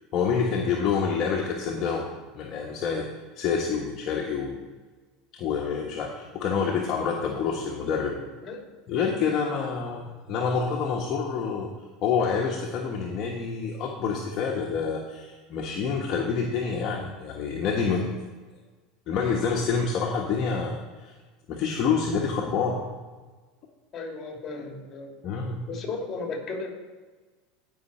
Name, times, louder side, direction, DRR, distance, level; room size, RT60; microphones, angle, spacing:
voice 1, 0.1-2.1 2.3-3.1 3.4-4.6 5.4-8.2 8.9-11.7 12.0-18.1 19.1-21.1 21.5-22.8 25.2-25.7, left 5 dB, 45° left, -1 dB, 1.3 m, -27 dB
voice 2, 23.9-25.3 25.7-26.7, left 3 dB, 30° left, 1 dB, 2.9 m, -35 dB
16.5 x 5.8 x 4.4 m, 1.3 s
supercardioid pair, 120°, 0 cm